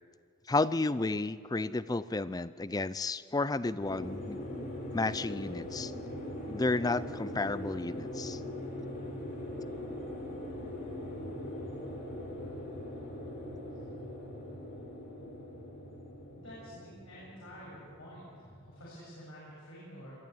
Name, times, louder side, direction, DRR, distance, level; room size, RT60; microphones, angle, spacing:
voice 1, 0.5-4.5 4.9-5.9 6.5-8.4, left 3 dB, 15° left, 16 dB, 0.4 m, -32 dB
sound 1, 3.8-18.7, left 1 dB, 45° left, 6.1 m, -41 dB
voice 2, 16.3-20.2, equal, 70° left, -8 dB, 7.8 m, -49 dB
23.0 x 14.0 x 8.8 m, 2.1 s
head